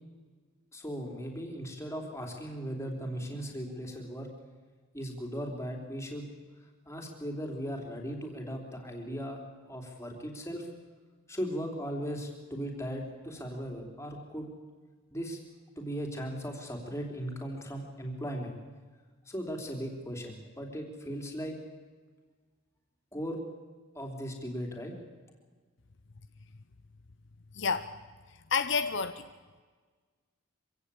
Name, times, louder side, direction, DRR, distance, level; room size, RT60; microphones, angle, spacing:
voice 1, 0.7-4.3 4.9-6.4 6.9-9.4 9.7-10.7 11.3-14.6 15.1-15.4 15.8-18.6 19.3-21.6 23.1-23.4 23.9-25.0, equal, 15° left, 2 dB, 3.5 m, -37 dB
voice 2, 27.5-27.9 28.3-29.2, left 5 dB, 60° left, 10 dB, 0.8 m, -30 dB
25.5 x 16.0 x 8.5 m, 1.4 s
head